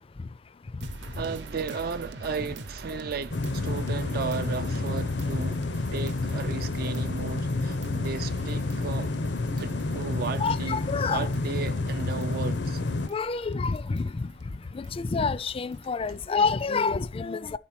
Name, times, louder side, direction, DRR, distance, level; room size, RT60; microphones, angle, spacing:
sound 1, 0.8-16.9, right 2 dB, 80° right, 0.9 m, -45 dB
voice 1, 1.1-9.1 9.6-10.8 11.1-12.8, right 5 dB, 55° right, 0.4 m, -35 dB
sound 2, 3.3-13.1, left 2 dB, 80° left, 0.7 m, -29 dB
voice 2, 10.4-11.3 13.1-14.3 14.7-17.6, left 4 dB, 30° left, 0.4 m, -28 dB
12.0 x 4.3 x 7.3 m
head